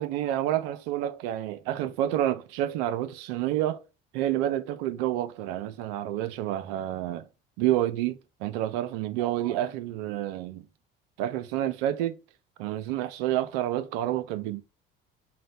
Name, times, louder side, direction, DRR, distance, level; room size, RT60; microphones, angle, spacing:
voice 1, 0.0-3.8 4.1-7.3 7.6-10.7 11.2-12.2 12.6-14.6, right 12 dB, 75° right, 0.5 m, -29 dB
4.1 x 2.1 x 3.9 m
hypercardioid pair, 65°, 30 cm